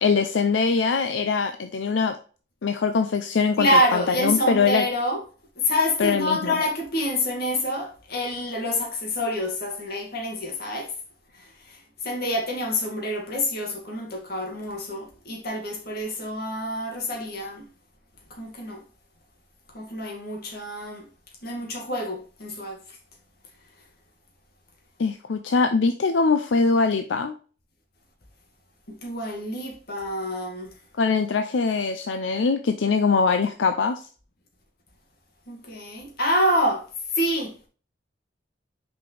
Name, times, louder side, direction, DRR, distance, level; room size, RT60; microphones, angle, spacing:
voice 1, 0.0-2.2 2.6-4.8 6.0-6.6 25.0-27.3 31.0-34.0, left 4 dB, 85° left, 0.5 m, -22 dB
voice 2, 3.6-5.2 5.6-10.9 11.3-17.7 18.3-18.8 19.7-21.1 21.4-23.0 28.9-30.7 35.5-36.9 37.1-37.7, left 1 dB, 55° left, 2.1 m, -27 dB
6.1 x 5.1 x 3.3 m
head